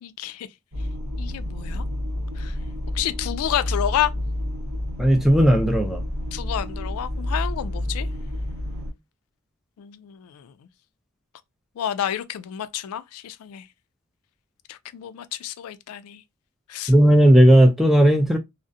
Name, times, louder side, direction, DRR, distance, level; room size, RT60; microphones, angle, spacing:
voice 1, 0.0-0.5 1.2-1.8 2.4-2.6 2.9-4.1 6.3-8.1 9.8-10.5 11.8-13.7 14.7-16.2 16.7-16.9, left 10 dB, 85° left, 0.3 m, -29 dB
sound 1, 0.7-8.9, left 1 dB, 70° right, 0.7 m, -29 dB
voice 2, 5.0-6.0 16.9-18.4, equal, ahead, 0.3 m, -15 dB
2.4 x 2.0 x 2.5 m
head